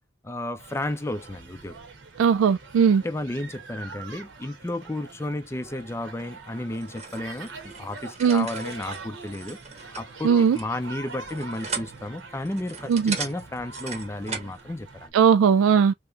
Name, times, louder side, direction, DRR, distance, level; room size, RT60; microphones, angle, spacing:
voice 1, 0.2-1.8 3.0-9.6 10.0-15.1, left 1 dB, 15° left, 0.4 m, -33 dB
sound 1, 0.6-15.1, right 4 dB, 70° right, 1.1 m, -44 dB
voice 2, 2.2-3.0 8.2-8.5 10.2-10.6 12.9-13.2 15.1-15.9, right 7 dB, 90° right, 0.3 m, -18 dB
sound 2, 6.7-14.6, right 5 dB, 35° right, 0.9 m, -38 dB
3.3 x 2.9 x 2.5 m
head